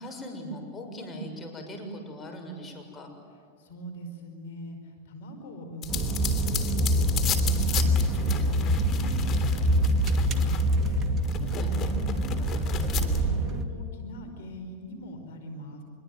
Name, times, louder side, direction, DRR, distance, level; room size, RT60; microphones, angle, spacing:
voice 1, 0.0-3.1 7.7-8.0 11.5-11.7, equal, 20° left, 3 dB, 6.9 m, -40 dB
voice 2, 3.6-15.8, right 1 dB, 75° left, 6 dB, 5.0 m, -42 dB
sound 1, 5.8-10.9 11.2-13.2, left 9 dB, 40° left, 3.1 m, -35 dB
sound 2, 5.9-13.6, right 1 dB, 25° right, 2.1 m, -25 dB
26.5 x 22.5 x 9.4 m, 2.1 s
hypercardioid pair, 110°, 0 cm